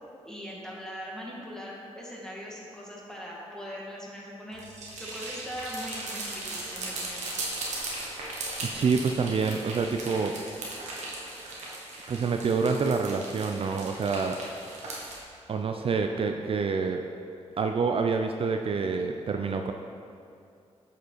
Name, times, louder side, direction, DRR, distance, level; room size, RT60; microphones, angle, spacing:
voice 1, 0.2-4.7 5.0-7.2, equal, 5° left, -4 dB, 1.8 m, -40 dB
sound 1, 4.5-15.2, right 2 dB, 90° right, 1.3 m, -38 dB
voice 2, 8.6-10.3 12.1-14.4 15.5-17.0 17.6-19.7, right 5 dB, 55° right, 5 dB, 0.4 m, -27 dB
8.1 x 5.0 x 4.5 m, 2.4 s
cardioid pair, 75°, 12 cm